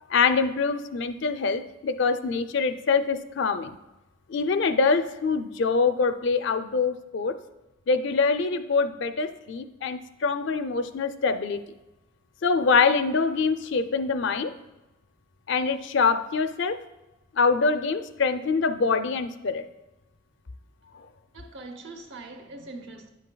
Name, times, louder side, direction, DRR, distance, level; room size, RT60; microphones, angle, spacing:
voice 1, 0.1-3.8 4.3-7.3 7.9-11.6 12.4-14.5 15.5-16.8 17.3-19.6, left 4 dB, 60° left, 0.5 m, -24 dB
voice 2, 21.3-23.1, right 2 dB, 60° right, 0.9 m, -42 dB
10.0 x 8.1 x 2.3 m
head